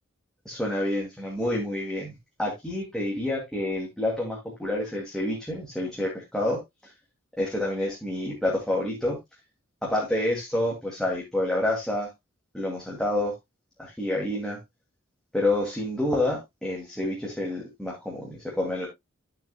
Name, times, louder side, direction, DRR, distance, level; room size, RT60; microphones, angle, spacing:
voice 1, 0.5-2.1 2.4-6.6 7.4-9.2 9.8-12.1 12.5-13.3 13.8-14.6 15.3-18.9, left 1 dB, 5° left, 2.5 m, -28 dB
13.0 x 6.6 x 2.3 m
head